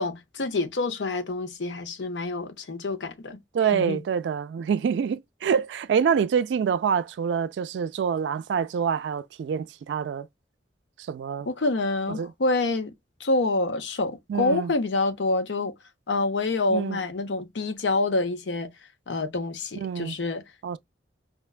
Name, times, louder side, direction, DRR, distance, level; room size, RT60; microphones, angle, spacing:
voice 1, 0.0-3.4 3.7-4.0 11.5-12.9 13.2-15.7 16.1-18.7 19.1-20.4, left 2 dB, 90° left, 0.7 m, -27 dB
voice 2, 3.5-10.3 11.0-11.5 12.1-12.3 14.3-14.7 16.7-17.0 19.8-20.2 20.6-20.8, right 7 dB, 75° right, 0.3 m, -26 dB
5.0 x 2.2 x 2.3 m
head